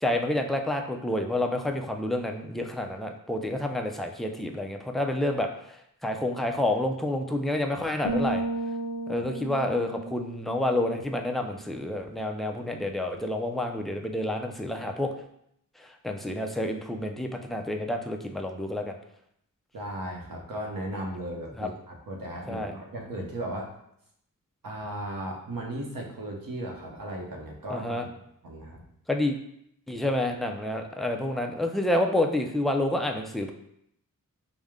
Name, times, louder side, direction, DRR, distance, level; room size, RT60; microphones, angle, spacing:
voice 1, 0.0-8.4 9.1-15.1 15.8-18.9 21.6-21.7 22.5-22.7 27.7-28.1 29.1-29.4 29.9-33.5, left 1 dB, ahead, 3 dB, 0.3 m, -29 dB
sound 1, 8.0-11.8, right 2 dB, 65° left, 0.6 m, -34 dB
voice 2, 19.7-23.7 24.6-27.9 28.4-28.9, right 1 dB, 80° right, 0 dB, 0.9 m, -36 dB
5.0 x 2.1 x 3.5 m, 0.73 s
wide cardioid pair, 105°, 34 cm